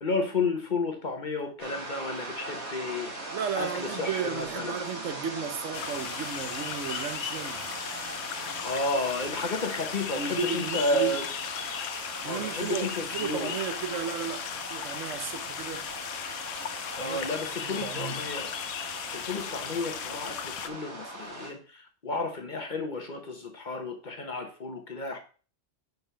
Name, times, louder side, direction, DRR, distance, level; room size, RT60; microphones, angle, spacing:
voice 1, 0.0-3.3 3.5-4.8 8.6-11.3 12.2-13.5 17.0-18.5 19.1-25.2, left 2 dB, 40° left, 1.0 m, -32 dB
wind through trees heavy white noisy +distant highway, 1.6-21.5, right 2 dB, 65° right, 2.3 m, -40 dB
voice 2, 3.3-7.7 10.1-11.2 12.2-15.9 17.0-17.2 17.6-18.2, right 7 dB, 80° right, 1.1 m, -34 dB
sound 1, 5.7-20.7, left 9 dB, 80° left, 0.9 m, -37 dB
5.3 x 4.7 x 5.5 m
omnidirectional pair, 1.3 m